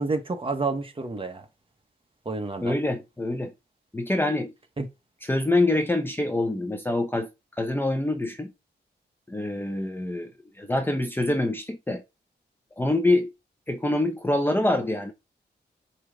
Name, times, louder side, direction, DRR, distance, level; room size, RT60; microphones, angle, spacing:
voice 1, 0.0-1.4 2.2-2.7 4.8-4.9, right 3 dB, 30° right, 1.3 m, -29 dB
voice 2, 2.6-3.5 3.9-4.5 5.2-7.3 7.6-8.5 9.3-10.3 10.6-12.0 12.8-13.3 13.7-15.1, left 2 dB, 10° left, 0.8 m, -25 dB
8.5 x 3.2 x 3.8 m
wide cardioid pair, 115°, 18 cm